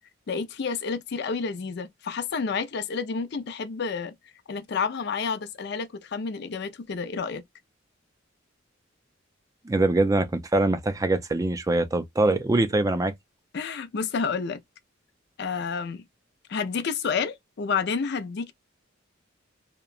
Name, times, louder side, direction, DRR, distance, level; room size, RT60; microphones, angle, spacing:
voice 1, 0.3-4.1 4.5-7.4 13.5-14.6 15.4-16.0 16.5-18.5, left 5 dB, 60° left, 0.5 m, -30 dB
voice 2, 9.7-13.1, right 2 dB, 20° right, 0.4 m, -23 dB
2.9 x 2.1 x 2.3 m
head